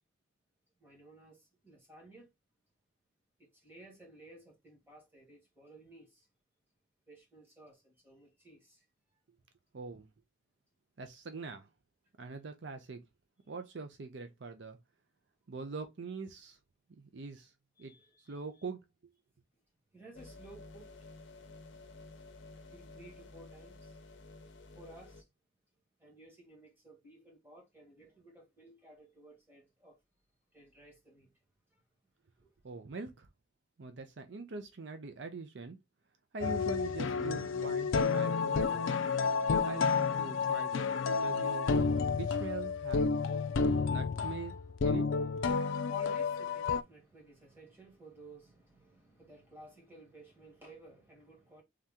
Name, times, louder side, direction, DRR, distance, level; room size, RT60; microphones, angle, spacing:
voice 1, 0.8-2.3 3.4-6.3 7.1-8.8 17.8-18.4 19.9-21.4 22.7-24.0 24.8-25.3 26.0-30.0 30.5-31.3 31.7-31.8 32.4-32.5 45.4-51.6, right 1 dB, 10° right, 1.7 m, -56 dB
voice 2, 9.7-10.1 11.0-11.7 12.2-13.0 13.5-14.8 15.5-16.6 17.0-17.5 17.8-17.9 18.3-18.8 32.6-33.3 33.8-35.8 36.3-38.9 39.6-41.7 42.0-43.3 43.9-44.5 44.8-45.0, right 4 dB, 65° right, 0.5 m, -43 dB
sound 1, 20.1-25.2, left 2 dB, 65° left, 0.8 m, -52 dB
sound 2, 36.4-46.8, left 5 dB, 85° left, 0.4 m, -31 dB
3.5 x 2.8 x 3.5 m
head